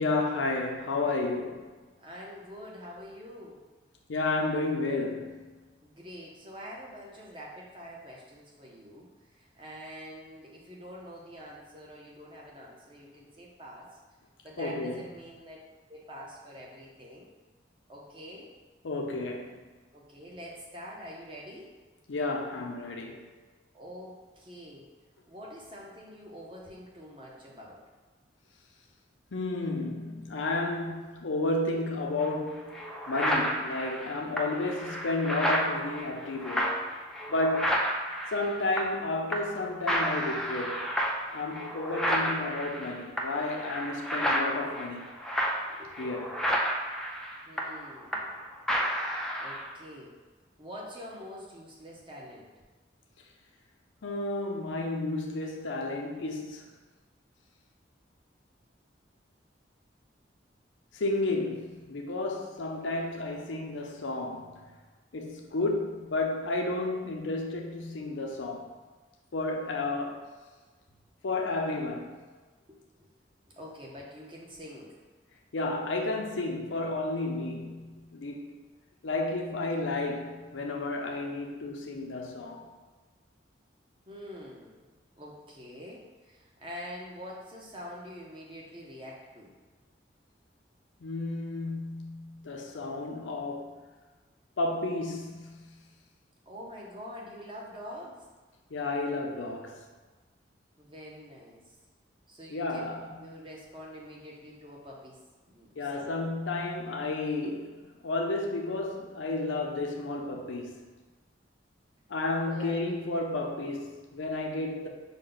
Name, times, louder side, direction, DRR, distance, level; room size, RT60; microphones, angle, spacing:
voice 1, 0.0-1.7 4.1-5.5 14.6-15.0 18.8-19.7 22.1-23.2 29.3-36.9 37.3-37.8 38.3-40.9 41.3-45.1 46.0-46.4 54.0-56.7 60.9-64.6 65.1-68.8 69.3-70.3 71.2-72.2 75.5-78.6 79.0-82.7 91.0-93.8 94.6-95.8 98.7-99.8 102.5-103.2 105.8-110.9 112.1-114.9, left 2 dB, 90° left, 0.6 m, -32 dB
voice 2, 2.0-3.6 5.8-14.0 14.4-15.6 15.9-17.3 17.9-18.5 19.9-21.8 23.7-24.9 25.3-27.8 42.2-42.5 45.8-45.9 47.5-48.3 49.4-50.2 50.6-52.5 72.7-73.1 73.6-75.0 84.1-84.9 85.1-89.5 96.5-98.3 100.8-101.6 102.3-102.8 103.2-106.2 112.4-112.9, equal, 25° right, 0.7 m, -45 dB
sound 1, 32.2-32.3 32.7-39.1 39.3-39.6 39.9-48.4 48.7-49.7, equal, 5° left, 0.3 m, -31 dB
5.2 x 2.2 x 3.9 m
head